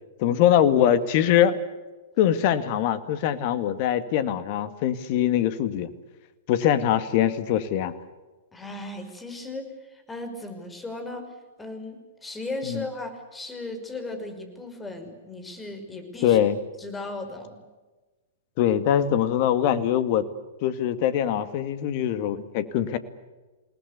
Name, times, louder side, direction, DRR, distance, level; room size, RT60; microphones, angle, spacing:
voice 1, 0.2-1.6 2.2-5.9 6.5-7.9 12.7-12.8 16.2-16.6 18.6-20.3 20.6-23.0, left 10 dB, 45° left, 12 dB, 2.0 m, -22 dB
voice 2, 8.5-11.2 11.6-16.4 16.8-17.6, left 2 dB, 10° left, 6 dB, 5.5 m, -36 dB
28.5 x 19.0 x 8.3 m, 1.2 s
figure-of-eight pair, 105°, 0 cm